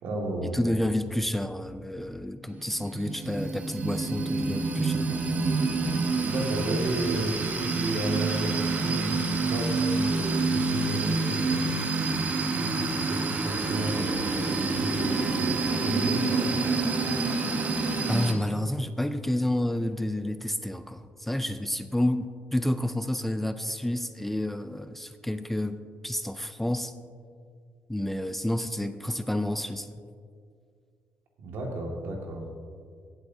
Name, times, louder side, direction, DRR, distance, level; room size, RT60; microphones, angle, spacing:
voice 1, 0.0-0.6 6.3-11.7 12.4-16.4 31.4-32.5, right 1 dB, 80° right, 0 dB, 2.0 m, -33 dB
voice 2, 0.5-5.0 18.1-25.8 26.0-26.9 27.9-29.9, left 1 dB, 5° left, 10 dB, 0.4 m, -29 dB
sound 1, 2.5-18.3, right 3 dB, 40° right, 1.1 m, -28 dB
16.5 x 8.0 x 2.7 m, 2.2 s
cardioid pair, 110°, 4 cm